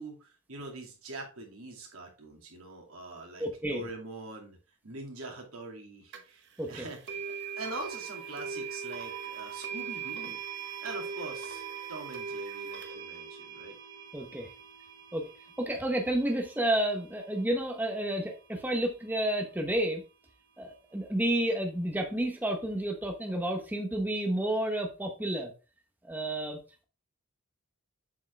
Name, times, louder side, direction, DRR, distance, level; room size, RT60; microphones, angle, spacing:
voice 1, 0.0-4.6 4.8-10.4 10.8-11.6 11.9-13.8, right 2 dB, 75° right, 1 dB, 2.3 m, -43 dB
voice 2, 3.4-3.9 6.6-6.9 14.1-14.5 15.1-15.3 15.6-20.0 20.6-25.5 26.0-26.8, right 1 dB, 10° right, 3 dB, 0.9 m, -31 dB
sound 1, 6.1-6.2 7.1-18.1, right 6 dB, 55° right, 1.1 m, -41 dB
7.3 x 4.5 x 3.3 m, 0.32 s
head